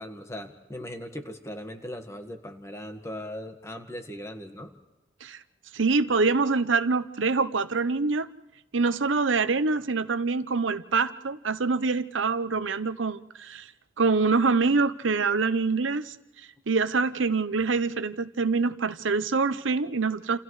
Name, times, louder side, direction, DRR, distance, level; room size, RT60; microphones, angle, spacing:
voice 1, 0.0-4.7, left 1 dB, 15° left, 5 dB, 1.6 m, -39 dB
voice 2, 5.7-8.3 8.7-13.7 14.0-16.1 16.7-20.4, right 4 dB, 85° right, 12 dB, 0.8 m, -25 dB
30.0 x 28.0 x 3.3 m, 1.0 s
head